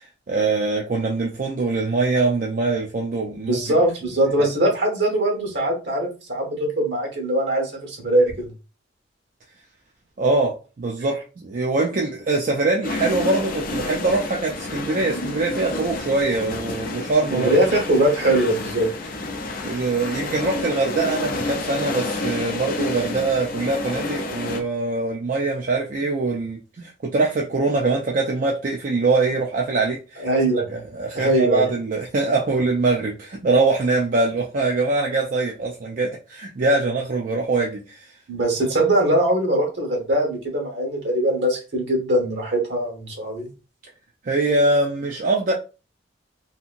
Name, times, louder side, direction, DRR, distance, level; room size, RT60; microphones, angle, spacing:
voice 1, 0.0-3.6 4.4-4.5 10.2-17.6 19.6-30.3 30.7-38.1 44.2-45.5, right 3 dB, 45° right, 0.4 m, -23 dB
voice 2, 3.4-8.5 17.3-18.9 30.2-30.6 31.1-31.7 38.3-43.5, right 1 dB, 65° right, 1.1 m, -21 dB
sound 1, 12.8-24.6, left 2 dB, 50° left, 0.5 m, -29 dB
2.8 x 2.7 x 2.5 m
head